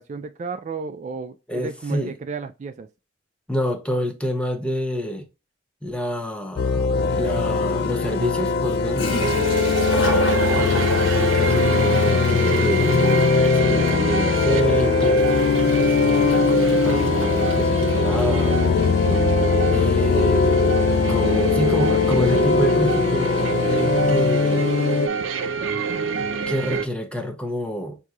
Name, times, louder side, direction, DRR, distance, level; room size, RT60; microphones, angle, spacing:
voice 1, 0.0-2.9 10.0-10.3, right 4 dB, 40° right, 0.3 m, -33 dB
voice 2, 1.5-2.1 3.5-5.3 5.8-9.2 10.5-15.3 15.7-18.9 19.6-20.5 21.1-24.8 26.5-28.0, equal, 5° left, 0.7 m, -27 dB
sound 1, 6.6-25.1, left 4 dB, 55° left, 0.3 m, -20 dB
Toilet flush, 9.0-18.3, equal, 90° left, 1.4 m, -31 dB
sound 2, 9.1-26.8, right 5 dB, 90° right, 0.6 m, -27 dB
6.0 x 2.7 x 2.3 m
head